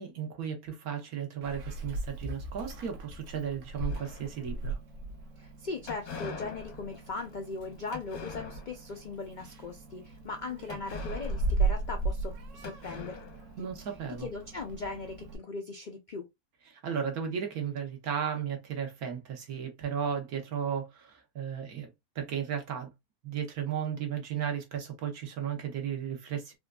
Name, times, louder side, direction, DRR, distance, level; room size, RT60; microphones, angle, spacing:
voice 1, 0.0-4.8 13.6-14.3 16.7-21.9 22.1-22.9 23.2-26.5, right 8 dB, 80° right, 1.5 m, -35 dB
Meow, 1.4-15.4, right 3 dB, 60° right, 1.1 m, -37 dB
sound 1, 3.9-4.7 5.9-9.0 9.4-9.7 10.7-12.3 12.6-14.0, left 5 dB, 90° left, 1.6 m, -44 dB
voice 2, 5.4-13.2 13.6-13.7 14.2-16.3, left 3 dB, 70° left, 0.4 m, -39 dB
4.3 x 2.5 x 2.2 m
omnidirectional pair, 1.6 m